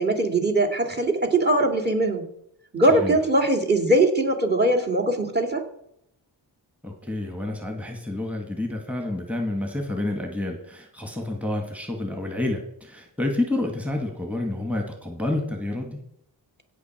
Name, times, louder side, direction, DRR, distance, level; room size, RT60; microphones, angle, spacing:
voice 1, 0.0-2.2 2.7-5.6, right 1 dB, 20° right, 5 dB, 2.5 m, -21 dB
voice 2, 2.9-3.2 6.8-16.0, left 2 dB, 5° right, 3 dB, 2.2 m, -29 dB
16.0 x 6.1 x 4.7 m, 0.75 s
cardioid pair, 50°, 45 cm